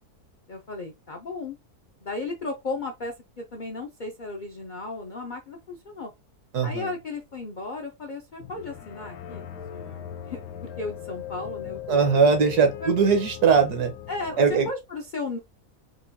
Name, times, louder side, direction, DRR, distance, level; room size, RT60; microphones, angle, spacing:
voice 1, 0.5-1.6 2.0-6.1 6.6-9.4 9.7-12.2 12.8-12.9 14.1-15.4, left 3 dB, 75° left, 0.4 m, -35 dB
voice 2, 6.5-6.9 11.9-13.9 14.4-14.7, right 5 dB, 80° right, 1.5 m, -20 dB
sound 1, 8.4-14.7, left 10 dB, 90° left, 1.2 m, -39 dB
4.8 x 2.2 x 2.7 m
omnidirectional pair, 1.7 m